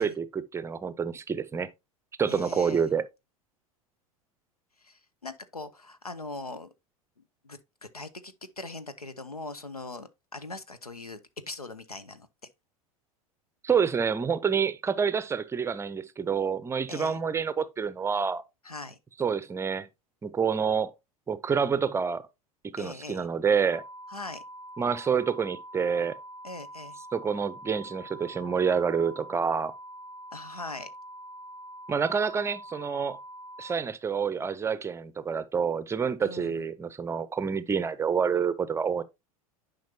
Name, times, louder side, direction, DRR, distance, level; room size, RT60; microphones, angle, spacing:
voice 1, 0.0-1.7 2.2-3.0 13.6-18.4 19.2-19.9 20.2-20.9 21.3-22.3 22.6-23.8 24.8-26.2 27.1-29.7 31.9-33.2 33.6-39.0, right 6 dB, 15° right, 0.6 m, -28 dB
voice 2, 2.3-2.9 4.8-6.7 7.4-11.2 11.5-12.3 16.9-17.2 18.6-19.0 22.8-23.3 24.1-24.4 26.4-27.0 30.3-30.9 36.2-36.6, left 2 dB, 90° left, 0.7 m, -41 dB
sound 1, 23.7-33.7, right 1 dB, 20° left, 0.6 m, -45 dB
10.5 x 5.2 x 2.8 m
figure-of-eight pair, 80°, 19 cm